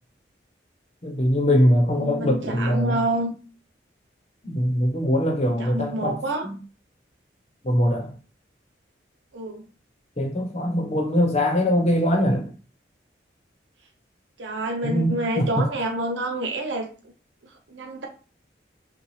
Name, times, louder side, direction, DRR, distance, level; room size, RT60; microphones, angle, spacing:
voice 1, 1.0-3.0 4.4-6.2 6.4-6.6 7.6-8.1 10.2-12.5 14.8-15.5, equal, 35° left, 0.9 m, -22 dB
voice 2, 1.9-3.3 5.4-6.5 9.3-9.6 14.4-17.1 17.7-18.1, right 1 dB, 90° right, 0.7 m, -28 dB
5.7 x 2.4 x 3.2 m
head